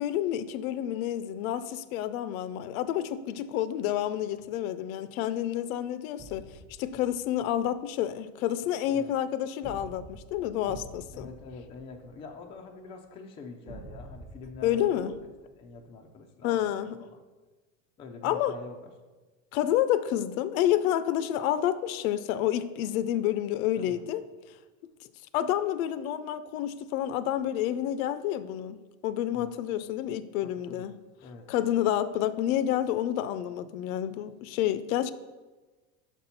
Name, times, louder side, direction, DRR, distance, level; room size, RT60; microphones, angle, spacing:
voice 1, 0.0-6.5 6.8-11.3 14.6-15.2 16.4-17.0 18.2-18.5 19.5-24.2 25.3-28.8 29.0-30.9 31.5-35.1, left 11 dB, 80° left, 14 dB, 0.5 m, -29 dB
sound 1, 6.2-7.6 9.6-12.6 13.7-15.8, right 2 dB, 10° right, 0.6 m, -48 dB
voice 2, 11.1-15.1 15.6-17.2 18.0-18.9 23.7-24.0 29.3-29.6 30.7-30.9 31.2-31.5, left 4 dB, 15° left, 3 dB, 0.3 m, -45 dB
6.0 x 4.2 x 5.6 m, 1.3 s
supercardioid pair, 145°, 41 cm